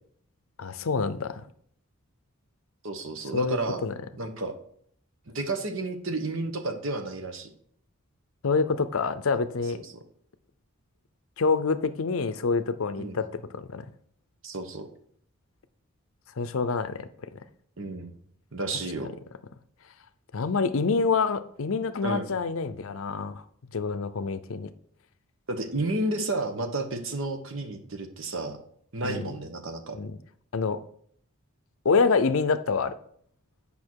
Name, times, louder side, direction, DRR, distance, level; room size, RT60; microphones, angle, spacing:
voice 1, 0.6-1.4 3.3-3.9 8.4-9.8 11.4-13.8 16.4-17.4 20.3-23.4 23.7-24.7 29.0-29.3 29.9-30.2 30.5-30.8 31.8-32.9, left 4 dB, 70° left, 13 dB, 0.5 m, -27 dB
voice 2, 2.8-3.8 4.2-4.5 5.3-7.5 9.7-9.8 13.0-13.2 14.4-14.9 17.8-18.1 18.5-19.1 22.0-22.3 25.5-28.6 28.9-30.0, right 2 dB, 60° right, 6 dB, 1.1 m, -31 dB
8.6 x 5.5 x 4.6 m, 0.64 s
head